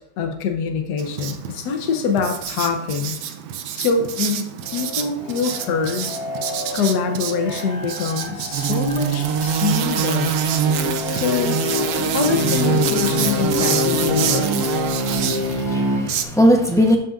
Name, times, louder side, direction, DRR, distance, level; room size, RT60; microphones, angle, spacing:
voice 1, 0.2-3.2 3.7-6.1 6.7-10.4 11.1-11.6 12.1-14.5, left 5 dB, 70° left, 5 dB, 1.4 m, -24 dB
Writing, 1.0-16.2, right 9 dB, 85° right, 1.3 m, -31 dB
sound 1, 4.7-16.0, left 3 dB, 50° left, 1.8 m, -27 dB
sound 2, 8.5-15.6, right 7 dB, 65° right, 0.8 m, -24 dB
voice 2, 15.1-17.0, equal, 5° left, 0 dB, 0.4 m, -19 dB
12.0 x 5.7 x 2.5 m, 0.70 s
omnidirectional pair, 1.8 m